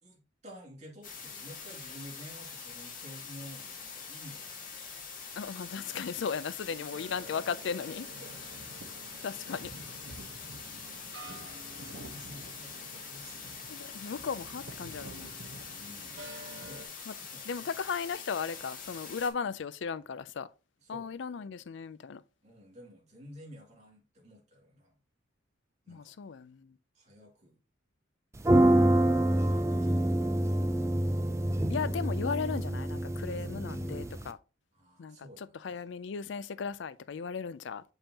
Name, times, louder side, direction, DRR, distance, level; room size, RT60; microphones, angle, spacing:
voice 1, 0.0-5.0 7.8-8.7 9.3-9.7 10.1-10.4 10.6-11.3 11.8-13.5 15.7-17.8 20.8-21.1 22.4-25.0 25.9-26.1 26.9-27.5 28.4-30.4 33.2-33.6 34.7-35.8, equal, 35° right, 2.4 m, -52 dB
sound 1, 1.0-19.3, left 5 dB, 45° left, 1.8 m, -44 dB
voice 2, 5.4-8.1 9.2-9.7 13.7-15.3 17.1-17.2 17.5-20.5 20.9-22.2 25.9-26.6 31.7-34.4 35.0-37.8, left 6 dB, 65° left, 0.4 m, -36 dB
sound 2, 6.9-16.9, right 2 dB, 65° right, 1.1 m, -49 dB
sound 3, 28.4-34.3, right 1 dB, 15° right, 0.4 m, -27 dB
7.0 x 5.4 x 2.9 m
head